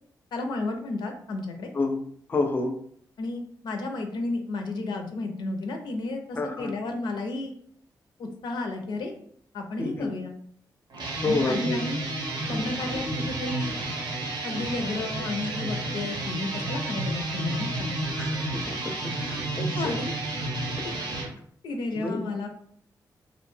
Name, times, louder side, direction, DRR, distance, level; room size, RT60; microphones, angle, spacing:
voice 1, 0.3-1.7 3.2-7.5 8.2-9.1 9.5-10.3 11.2-12.0 12.5-13.7 14.4-17.9 19.7-20.1 20.8-21.0 21.6-22.5, left 2 dB, 90° left, 4 dB, 0.4 m, -32 dB
voice 2, 2.3-2.7 6.4-6.7 9.8-10.1 11.2-11.8 18.2-18.7 19.0-19.9 21.9-22.2, left 2 dB, 30° left, 6 dB, 0.4 m, -29 dB
sound 1, 10.9-21.3, right 2 dB, 80° right, 0.7 m, -31 dB
2.4 x 2.1 x 3.1 m, 0.63 s
cardioid pair, 85°, 7 cm